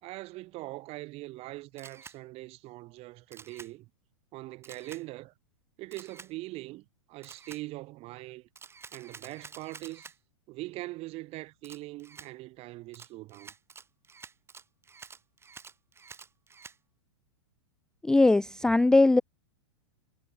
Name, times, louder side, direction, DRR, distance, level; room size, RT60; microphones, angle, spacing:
voice 1, 0.0-3.9 4.3-5.3 5.8-8.5 8.9-10.1 10.5-13.5, right 20 dB, 40° right, 2.6 m, -42 dB
Camera, 1.8-2.2 3.3-3.7 4.6-5.0 5.9-6.3 7.2-7.6 8.6-10.2 11.6-12.3 12.9-16.8, right 5 dB, 15° right, 6.8 m, -49 dB
voice 2, 18.0-19.2, left 2 dB, 5° left, 0.4 m, -20 dB
hypercardioid pair, 110°, 16 cm